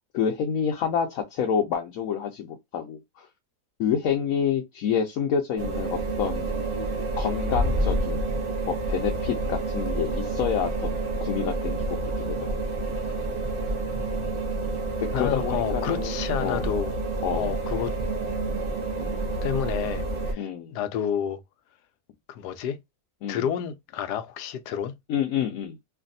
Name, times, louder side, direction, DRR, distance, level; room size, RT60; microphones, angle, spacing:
voice 1, 0.1-3.3 3.8-6.5 7.2-8.3 8.7-10.9 11.2-12.6 13.0-13.1 15.0-16.7 17.2-17.6 19.0-19.2 20.4-20.7 23.2-23.5 25.1-25.8, left 7 dB, 65° left, 1.0 m, -28 dB
sound 1, 5.6-20.3, right 2 dB, 45° right, 0.8 m, -29 dB
voice 2, 13.9-14.5 15.1-17.0 17.3-17.9 19.4-21.4 22.3-22.8 23.3-25.0, left 9 dB, 90° left, 1.2 m, -30 dB
3.3 x 2.6 x 2.5 m
omnidirectional pair, 1.7 m